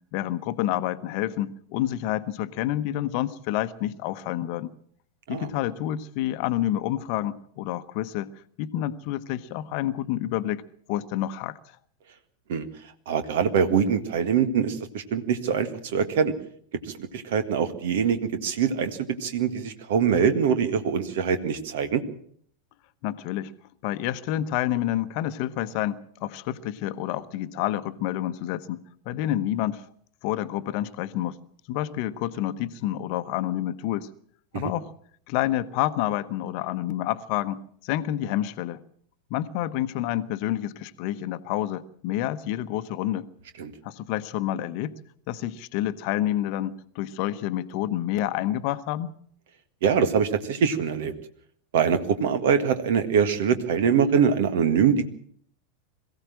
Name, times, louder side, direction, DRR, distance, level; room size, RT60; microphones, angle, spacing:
voice 1, 0.1-4.7 5.3-8.3 8.6-10.6 10.9-11.6 23.0-23.5 23.8-29.8 30.2-31.4 31.7-34.1 34.5-34.9 35.3-38.8 39.3-43.3 43.8-44.9 45.3-49.1, left 13 dB, 45° left, 1.0 m, -28 dB
voice 2, 13.1-16.3 16.8-22.0 34.5-34.7 43.6-43.7 49.8-51.1 51.7-55.1, right 7 dB, 55° right, 1.7 m, -23 dB
22.5 x 16.0 x 7.5 m
figure-of-eight pair, 90°, 0 cm